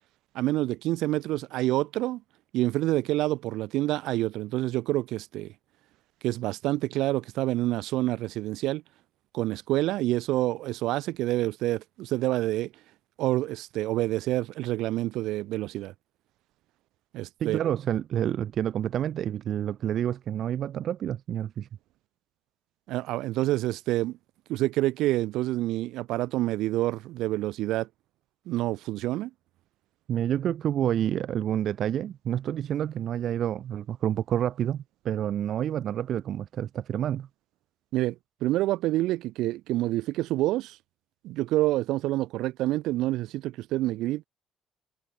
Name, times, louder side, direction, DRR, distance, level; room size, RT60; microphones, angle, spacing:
voice 1, 0.3-2.2 2.5-5.5 6.2-8.8 9.3-12.7 13.2-15.9 17.1-17.6 22.9-24.2 24.5-27.9 28.5-29.3 37.9-40.8 41.2-44.2, right 16 dB, 75° right, 2.6 m, -27 dB
voice 2, 17.4-21.7 30.1-37.3, right 10 dB, 50° right, 0.6 m, -28 dB
cardioid pair, 145°, 0 cm